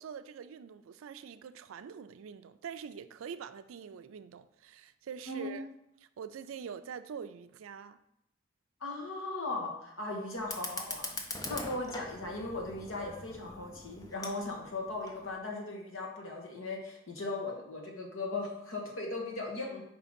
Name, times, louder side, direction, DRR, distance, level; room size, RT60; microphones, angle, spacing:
voice 1, 0.0-5.7 6.2-8.0, right 7 dB, 90° right, 0.4 m, -44 dB
voice 2, 5.3-5.6 8.8-11.2 11.5-19.8, left 2 dB, 85° left, 1.4 m, -38 dB
Fire, 10.4-15.4, left 2 dB, 20° left, 0.5 m, -43 dB
4.9 x 3.7 x 5.2 m
head